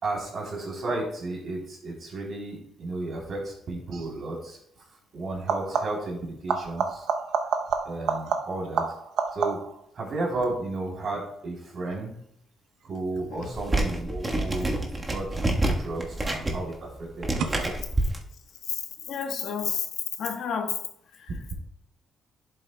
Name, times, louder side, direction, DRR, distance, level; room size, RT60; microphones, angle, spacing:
voice 1, 0.0-4.6 5.1-7.1 7.8-8.9 9.3-9.6 9.9-12.1 12.9-14.8 15.1-17.7, right 2 dB, 50° right, -2 dB, 3.3 m, -33 dB
sound 1, 3.9-4.2 5.3-6.1 6.5-9.9 15.3-15.9 17.4-17.5, right 6 dB, 80° right, 0.7 m, -29 dB
sound 2, 13.5-18.2, right 1 dB, 25° right, 1.3 m, -28 dB
voice 2, 19.1-19.9 20.2-20.8 21.2-21.3, left 7 dB, 75° left, 5 dB, 1.0 m, -30 dB
11.0 x 7.6 x 2.2 m, 0.72 s
cardioid pair, 90°, 0 cm